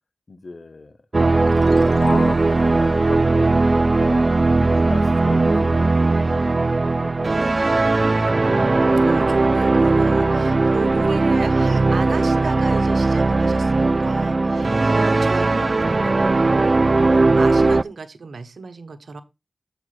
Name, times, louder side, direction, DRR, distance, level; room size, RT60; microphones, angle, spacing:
voice 1, 0.3-6.5 6.9-8.2 14.5-14.9, left 3 dB, 65° left, 1.0 m, -37 dB
sound 1, 1.1-17.8, right 3 dB, 50° right, 0.3 m, -18 dB
sound 2, 1.5-4.7, left 3 dB, 85° left, 2.2 m, -36 dB
voice 2, 8.4-19.2, right 4 dB, 85° right, 1.0 m, -34 dB
7.7 x 4.7 x 4.8 m
cardioid pair, 45°, 0 cm